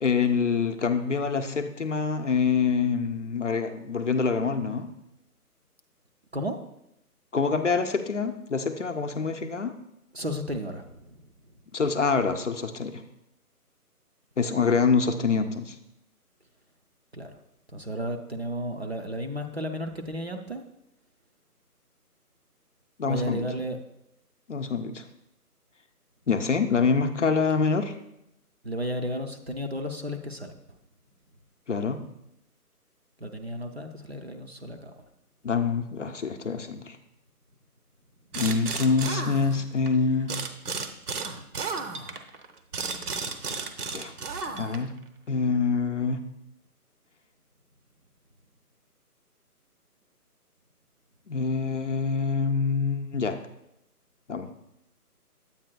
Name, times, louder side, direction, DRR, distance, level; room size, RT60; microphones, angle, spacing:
voice 1, 0.0-4.9 7.3-9.7 11.7-13.0 14.4-15.8 23.0-23.4 24.5-25.0 26.3-27.9 31.7-32.0 35.4-37.0 38.3-40.3 43.9-44.1 44.6-44.9 45.3-46.2 51.3-53.4 54.3-54.5, left 5 dB, 55° left, 7 dB, 0.5 m, -25 dB
voice 2, 10.1-11.3 17.1-17.3 17.7-20.6 23.1-23.8 28.6-30.8 33.2-35.0, equal, 45° right, 5 dB, 0.5 m, -33 dB
sound 1, 38.3-39.9 40.3-45.0, right 4 dB, 70° right, 0.9 m, -33 dB
9.1 x 8.5 x 2.2 m, 0.83 s
hypercardioid pair, 170°, 46 cm